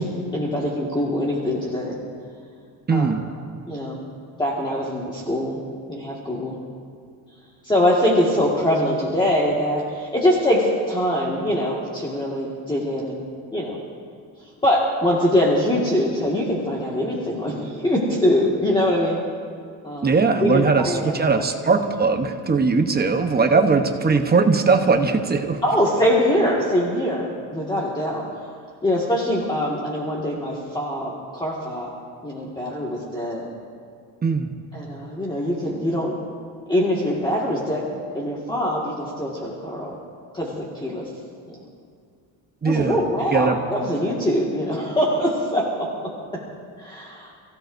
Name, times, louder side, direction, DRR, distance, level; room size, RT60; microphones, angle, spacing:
voice 1, 0.0-2.0 2.9-3.1 3.7-4.0 4.4-5.6 5.9-6.6 7.6-13.2 13.5-13.8 14.4-19.2 19.8-20.1 20.4-21.4 23.5-23.6 25.6-28.2 28.8-31.9 32.2-33.5 34.7-36.2 36.7-37.9 38.1-40.0 40.3-41.1 41.5-41.6 42.6-46.4 46.8-47.3, left 1 dB, 10° left, -5 dB, 1.9 m, -23 dB
voice 2, 2.9-3.2 20.0-25.6 34.2-34.5 42.6-43.0 43.3-43.6, right 4 dB, 25° right, 5 dB, 1.0 m, -19 dB
28.5 x 16.0 x 2.7 m, 2.2 s
cardioid pair, 140°, 42 cm